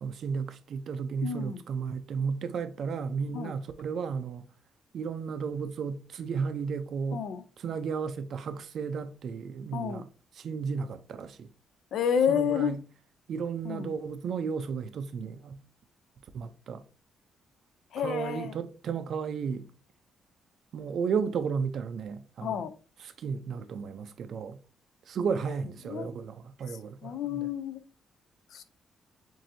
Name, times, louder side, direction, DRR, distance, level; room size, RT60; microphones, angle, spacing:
voice 1, 0.0-4.4 4.9-7.2 7.6-10.1 10.4-11.5 12.3-12.8 13.3-15.6 16.3-16.8 18.0-19.7 20.7-22.6 23.2-24.6 25.1-27.5, right 6 dB, 55° right, 0.5 m, -33 dB
voice 2, 1.2-1.6 3.3-3.6 7.1-7.4 9.7-10.0 11.9-12.8 13.6-13.9 17.9-18.6 22.4-22.7 25.8-26.1 26.7-27.8 28.5-28.6, left 8 dB, 70° left, 0.5 m, -30 dB
7.4 x 2.7 x 2.6 m
cardioid pair, 150°, 0 cm